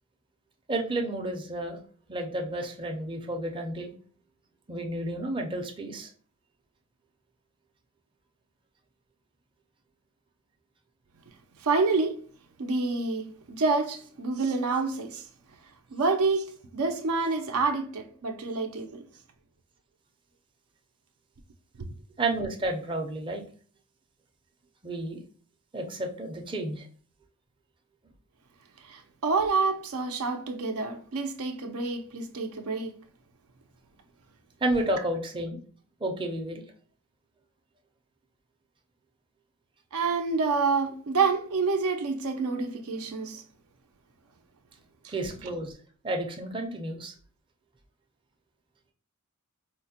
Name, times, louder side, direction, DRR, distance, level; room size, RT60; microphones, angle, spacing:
voice 1, 0.7-1.8 2.1-3.9 4.7-6.1 22.2-23.4 24.8-25.2 25.7-26.9 34.6-35.6 36.0-36.6 45.1-45.7 46.0-47.1, right 1 dB, 25° right, 0.5 m, -31 dB
voice 2, 11.6-12.2 12.6-15.2 15.9-19.1 21.8-21.9 28.8-33.0 39.9-43.4 45.0-45.1, right 4 dB, 80° right, 0.5 m, -28 dB
4.3 x 2.1 x 2.7 m
head